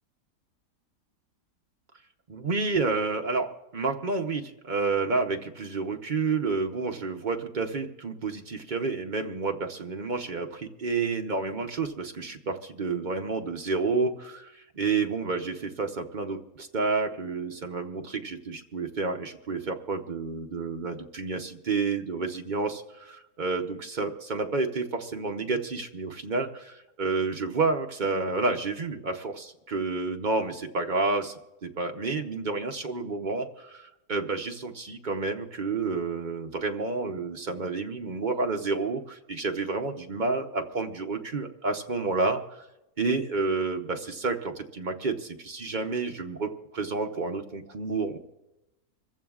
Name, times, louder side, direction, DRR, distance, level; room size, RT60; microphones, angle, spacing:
voice 1, 2.3-14.1 14.6-42.7 43.0-48.2, right 4 dB, 45° right, 4 dB, 0.6 m, -30 dB
26.0 x 15.0 x 2.4 m, 0.97 s
omnidirectional pair, 1.8 m